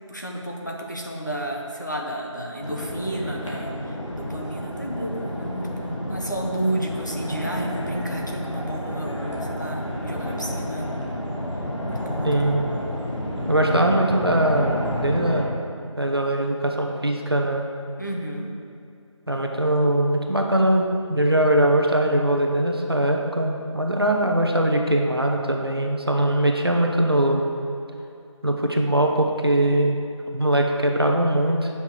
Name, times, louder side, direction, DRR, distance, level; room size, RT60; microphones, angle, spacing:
voice 1, 0.1-10.9 11.8-12.6 18.0-18.6, right 1 dB, 35° left, 0 dB, 0.7 m, -31 dB
sound 1, 2.6-15.4, equal, 65° left, 1.9 m, -30 dB
voice 2, 12.2-12.6 13.5-15.5 16.0-17.7 19.3-27.4 28.4-30.0 30.3-31.7, right 1 dB, 50° right, 2 dB, 0.8 m, -21 dB
8.2 x 5.8 x 4.5 m, 2.6 s
figure-of-eight pair, 180°, 17 cm